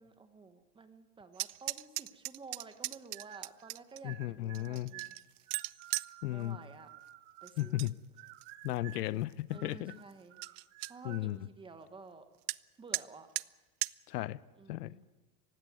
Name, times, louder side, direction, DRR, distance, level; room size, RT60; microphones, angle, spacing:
voice 1, 0.0-5.1 6.3-6.9 7.4-7.9 9.5-10.6 10.9-12.3 12.8-13.3 14.6-15.1, right 4 dB, 10° right, 1.1 m, -52 dB
sound 1, 1.3-4.0 4.5-6.1 7.5-7.9 8.3-8.8 9.3-9.4 9.7-9.8 10.1-10.2 10.4-10.9 12.5-12.6 12.9-13.0 13.4-13.5 13.8-13.9, right 20 dB, 75° right, 0.6 m, -38 dB
sound 2, 3.1-3.7 4.0-7.9 8.2-9.1 9.5-11.3, right 16 dB, 45° right, 1.1 m, -52 dB
voice 2, 4.0-4.9 6.2-6.6 7.6-8.0 8.6-10.0 11.0-11.4 14.1-14.4 14.7-15.0, left 16 dB, 85° left, 0.8 m, -35 dB
18.5 x 16.0 x 9.4 m
supercardioid pair, 145°, 46 cm